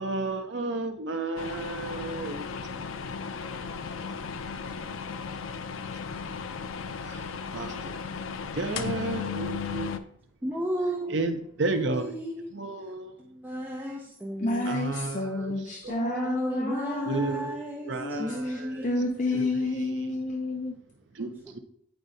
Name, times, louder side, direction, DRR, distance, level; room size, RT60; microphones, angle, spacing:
voice 1, 0.0-2.5 2.7-3.0 7.0-7.3 7.5-7.9 8.5-9.9 11.1-12.1 12.5-13.1 14.7-15.5 15.8-16.2 17.1-17.6 17.8-18.9 19.3-19.4 21.2-21.6, right 3 dB, 65° right, 7 dB, 0.7 m, -32 dB
sound 1, 1.4-10.0, left 6 dB, 90° left, 0.4 m, -35 dB
voice 2, 10.4-11.2 11.7-12.5 12.8-12.9 13.2-14.7 15.9-19.5 21.4-21.5, equal, 10° right, -2 dB, 0.5 m, -34 dB
voice 3, 14.4-17.5 17.9-20.8, left 2 dB, 40° left, 3 dB, 0.5 m, -30 dB
8.9 x 4.6 x 2.7 m, 0.69 s
head